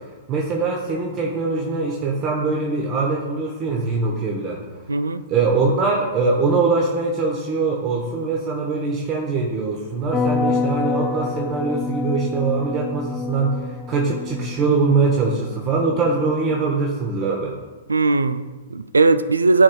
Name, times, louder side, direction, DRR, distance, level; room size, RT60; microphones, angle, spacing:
voice 1, 0.3-4.6 5.3-17.6, right 4 dB, 30° right, 0 dB, 0.8 m, -22 dB
voice 2, 4.9-5.2 17.9-19.6, right 3 dB, 75° right, 13 dB, 0.3 m, -18 dB
sound 1, 10.1-16.6, left 4 dB, 5° left, 0.5 m, -27 dB
11.5 x 4.1 x 2.3 m, 1.3 s
figure-of-eight pair, 110°, 0 cm